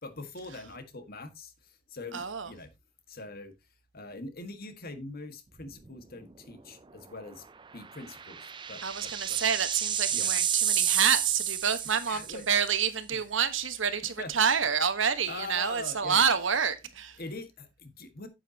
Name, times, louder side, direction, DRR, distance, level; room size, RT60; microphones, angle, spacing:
voice 1, 0.0-2.7 3.1-3.5 3.9-7.4 7.7-9.4 10.1-10.4 12.0-12.5 13.1-13.2 14.0-14.3 15.3-16.2 17.2-18.3, left 3 dB, 45° left, 1.7 m, -43 dB
voice 2, 2.1-2.5 8.8-17.2, right 7 dB, 65° right, 1.3 m, -28 dB
sound 1, 5.6-5.9 6.3-6.4 7.8-12.5, right 9 dB, 25° right, 0.5 m, -30 dB
9.4 x 8.5 x 2.9 m
head